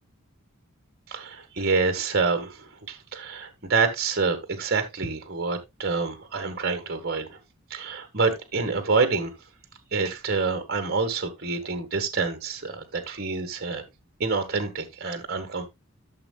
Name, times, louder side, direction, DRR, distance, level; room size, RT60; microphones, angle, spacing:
voice 1, 1.1-7.4 7.7-9.3 9.9-13.8 14.2-15.7, right 4 dB, 45° right, 1.5 m, -27 dB
13.5 x 6.6 x 2.3 m
head